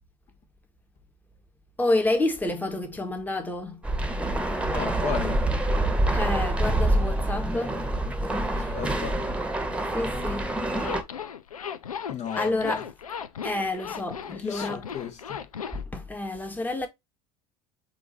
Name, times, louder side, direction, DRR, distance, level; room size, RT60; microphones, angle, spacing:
voice 1, 1.8-3.8 6.1-7.8 8.3-8.8 9.9-10.6 12.4-12.8 13.4-14.9 15.7-16.9, left 2 dB, 10° left, 1.7 m, -29 dB
sound 1, 3.8-11.0, right 1 dB, 5° right, 1.4 m, -26 dB
voice 2, 4.6-5.4 8.7-9.2 12.1-12.8 14.4-15.4, left 7 dB, 40° left, 1.6 m, -34 dB
Zipper (clothing), 10.7-15.8, left 7 dB, 85° left, 0.6 m, -36 dB
7.9 x 2.9 x 4.2 m
figure-of-eight pair, 75°, 18 cm